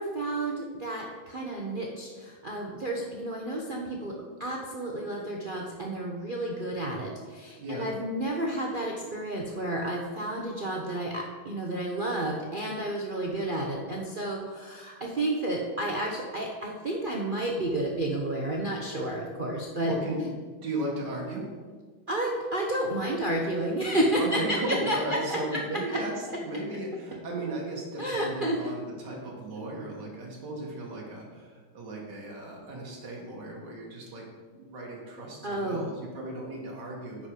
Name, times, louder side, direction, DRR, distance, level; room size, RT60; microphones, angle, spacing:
voice 1, 0.0-4.1 4.4-19.9 22.1-25.6 28.0-28.6 35.4-35.9, right 1 dB, 70° right, -2 dB, 0.4 m, -31 dB
voice 2, 19.8-20.3 20.6-21.5 24.2-34.3 34.5-37.3, right 1 dB, 55° right, -2 dB, 2.3 m, -35 dB
9.5 x 5.2 x 5.0 m, 1.5 s
omnidirectional pair, 2.3 m